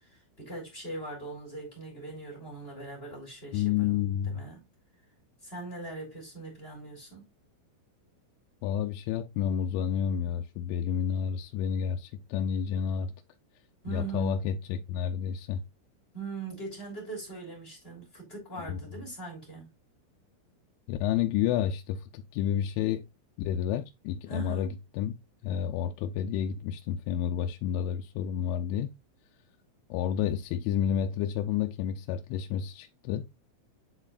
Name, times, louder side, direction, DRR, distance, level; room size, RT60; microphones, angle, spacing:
voice 1, 0.0-4.6 5.4-7.3 13.8-14.4 16.1-19.7 24.3-24.7, right 3 dB, 15° left, 2.3 m, -41 dB
voice 2, 3.5-4.4 8.6-13.1 13.9-15.6 18.7-18.8 20.9-23.1 23.4-25.2 25.4-28.9 29.9-33.3, left 9 dB, 85° left, 3.0 m, -30 dB
10.5 x 4.4 x 2.4 m
omnidirectional pair, 5.5 m